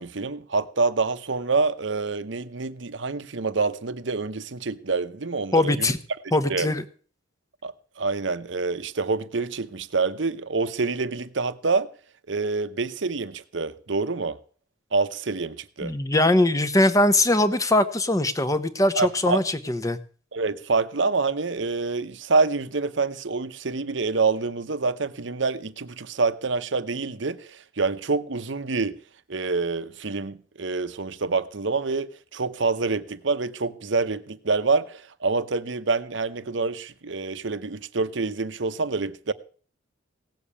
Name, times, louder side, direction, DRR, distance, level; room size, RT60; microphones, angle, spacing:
voice 1, 0.0-5.9 6.5-6.7 7.6-11.9 12.3-14.4 14.9-15.9 19.0-19.4 20.3-29.0 29.3-39.3, right 4 dB, 60° right, 0.9 m, -26 dB
voice 2, 5.5-6.0 6.3-6.8 15.8-20.0, left 1 dB, 15° left, 0.9 m, -21 dB
17.0 x 7.0 x 8.5 m
head